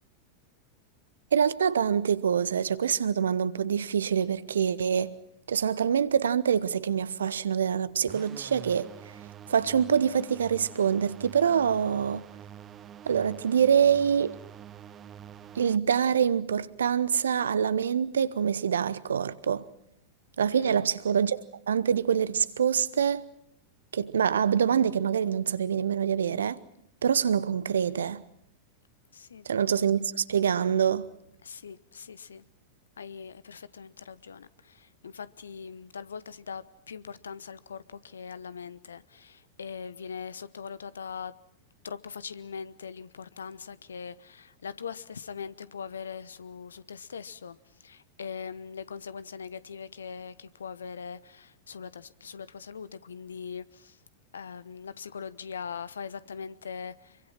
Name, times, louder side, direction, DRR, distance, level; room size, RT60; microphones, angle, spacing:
voice 1, 1.3-5.2 5.5-12.3 13.0-14.4 15.5-19.7 20.4-23.3 23.9-26.6 27.0-28.2 29.4-31.1, right 7 dB, 65° right, 1.0 m, -25 dB
sound 1, 8.1-15.8, right 9 dB, 25° right, 1.1 m, -46 dB
voice 2, 20.5-20.8 29.1-29.4 31.4-32.4 33.0-41.3 41.8-47.6 47.8-54.0 54.3-57.2, left 6 dB, 70° left, 1.0 m, -41 dB
26.0 x 24.5 x 5.9 m
figure-of-eight pair, 90°, 0 cm